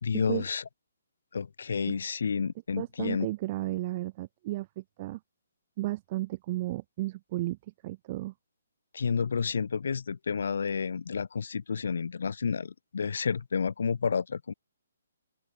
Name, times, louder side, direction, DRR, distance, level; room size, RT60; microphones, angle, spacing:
voice 1, 0.0-0.6 1.3-3.3 8.9-14.5, left 6 dB, 60° left, 2.0 m, -30 dB
voice 2, 2.8-5.2 5.8-7.6 7.8-8.3, right 17 dB, 20° right, 1.6 m, -33 dB
open air
hypercardioid pair, 175°, 0 cm